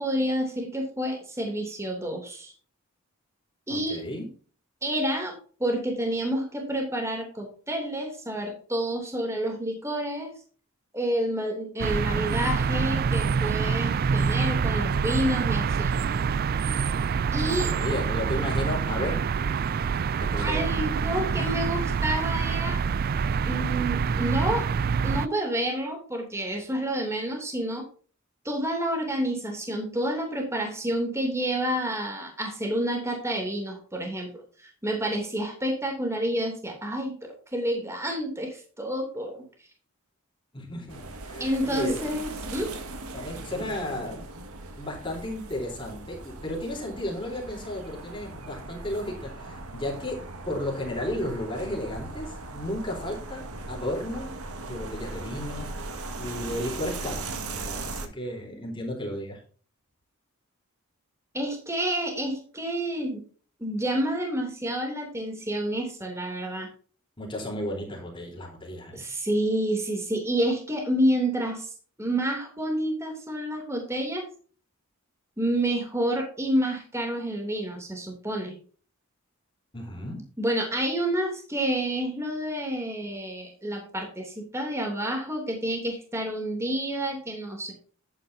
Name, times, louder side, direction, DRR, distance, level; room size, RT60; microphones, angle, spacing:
voice 1, 0.0-2.5 3.7-4.0 4.8-5.3 5.6-10.3 10.9-15.9 17.3-17.7 20.4-22.8 23.4-24.7 25.0-27.8 28.4-34.3 34.6-37.1 37.5-39.4 41.4-42.7 61.3-63.2 63.6-66.7 68.9-71.7 72.0-74.2 75.4-78.6 80.4-87.7, right 1 dB, 10° right, 1 dB, 2.9 m, -29 dB
voice 2, 3.7-4.3 17.4-19.2 20.2-20.6 21.4-21.8 40.5-41.0 41.2-42.0 43.1-44.2 44.8-50.2 50.5-55.7 56.2-59.4 67.2-69.0 79.7-80.2, left 1 dB, 25° left, 0 dB, 3.7 m, -34 dB
sound 1, 11.8-25.3, right 6 dB, 45° right, 0.3 m, -26 dB
sound 2, 40.9-58.1, right 2 dB, 90° right, 1.8 m, -39 dB
11.0 x 9.3 x 2.7 m, 0.41 s
head